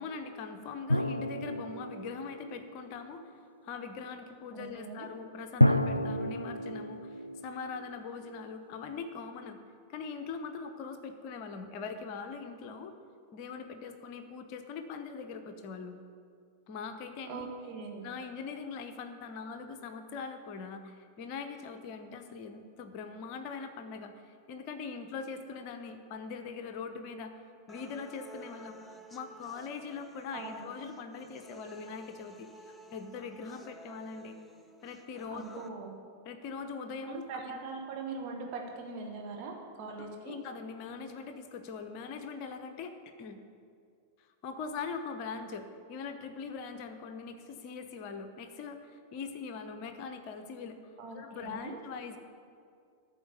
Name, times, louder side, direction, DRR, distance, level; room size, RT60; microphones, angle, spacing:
voice 1, 0.0-3.3 3.6-9.6 9.9-12.9 13.3-15.9 16.7-17.5 18.0-27.3 27.7-34.4 34.8-35.6 36.2-37.6 40.0-43.4 44.2-52.2, left 5 dB, 40° left, 8 dB, 0.8 m, -42 dB
sound 1, 0.9-3.2 5.6-8.5, left 1 dB, 90° left, 0.3 m, -30 dB
voice 2, 4.5-5.1 17.3-18.1 30.3-30.7 35.3-35.9 37.1-40.4 51.0-51.8, right 4 dB, 40° right, 1 dB, 1.8 m, -41 dB
sound 2, 27.7-35.7, right 1 dB, 5° left, 0.7 m, -54 dB
13.5 x 4.5 x 8.1 m, 2.2 s
figure-of-eight pair, 90°, 0 cm